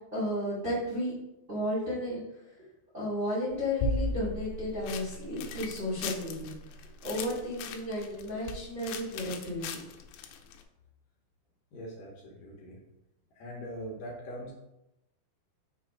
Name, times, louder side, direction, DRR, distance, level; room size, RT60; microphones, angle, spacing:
voice 1, 0.1-1.1 1.5-2.2 2.9-6.5 7.0-9.8, left 1 dB, 80° right, -7 dB, 0.6 m, -33 dB
sound 1, 3.5-10.6, left 2 dB, 90° left, 2.8 m, -37 dB
voice 2, 11.7-12.8 13.4-14.5, equal, 70° left, -2 dB, 2.2 m, -42 dB
6.6 x 3.0 x 4.9 m, 0.88 s
omnidirectional pair, 4.8 m